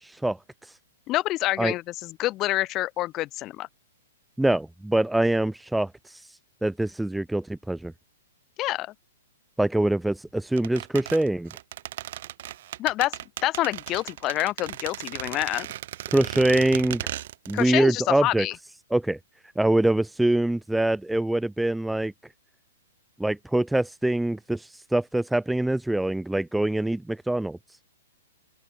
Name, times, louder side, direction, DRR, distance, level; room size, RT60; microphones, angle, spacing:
voice 1, 0.0-0.7 1.6-1.7 4.4-6.3 6.6-7.9 9.6-11.5 16.1-17.1 17.5-18.5 18.9-19.2 19.6-22.1 23.2-27.6, right 1 dB, 5° right, 1.3 m, -24 dB
voice 2, 1.1-3.7 8.6-8.9 12.8-15.7 17.5-18.6, left 16 dB, 30° left, 3.1 m, -27 dB
sound 1, 10.6-17.7 18.0-18.1, right 13 dB, 60° right, 6.6 m, -36 dB
open air
hypercardioid pair, 130°, 0 cm